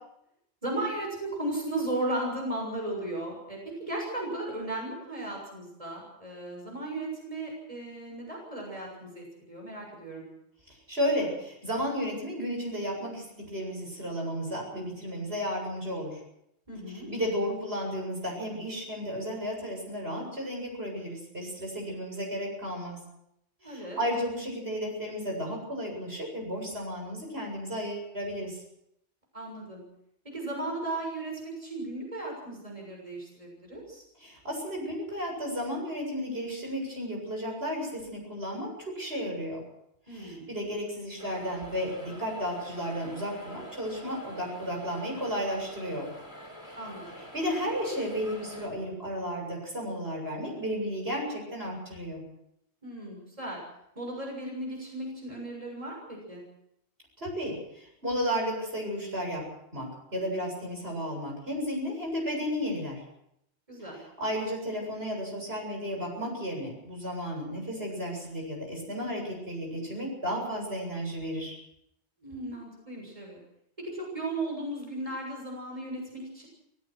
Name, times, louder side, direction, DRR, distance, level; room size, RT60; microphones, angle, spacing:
voice 1, 0.6-10.2 16.7-17.1 23.6-24.0 29.3-29.8 30.3-34.0 40.1-40.5 46.8-47.0 52.8-53.6 54.0-56.4 63.7-64.0 72.2-73.4 73.8-76.5, right 1 dB, 30° right, -1 dB, 6.9 m, -36 dB
voice 2, 10.9-16.2 17.1-23.0 23.6-28.6 34.2-39.6 40.1-46.1 46.7-46.8 47.2-52.2 57.2-59.4 59.7-63.0 63.9-71.6, equal, 65° right, 0 dB, 7.9 m, -33 dB
sound 1, 41.2-48.7, equal, 25° left, 5.4 m, -46 dB
27.0 x 16.5 x 6.3 m, 0.78 s
omnidirectional pair, 1.1 m